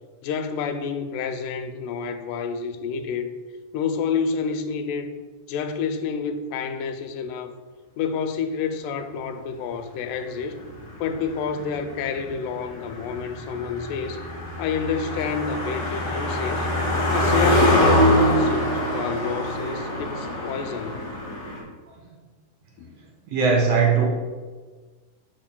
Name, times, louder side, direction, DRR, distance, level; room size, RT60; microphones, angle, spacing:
voice 1, 0.2-3.3 3.7-5.1 5.5-7.5 8.0-10.6 11.0-14.2 14.6-16.7 17.1-21.0 22.8-23.0, left 6 dB, 90° left, 2.2 m, -29 dB
Car passing by, 10.4-21.6, left 1 dB, 40° left, 1.4 m, -24 dB
voice 2, 23.3-24.0, right 5 dB, 65° right, 1.9 m, -19 dB
12.5 x 4.7 x 2.2 m
omnidirectional pair, 3.7 m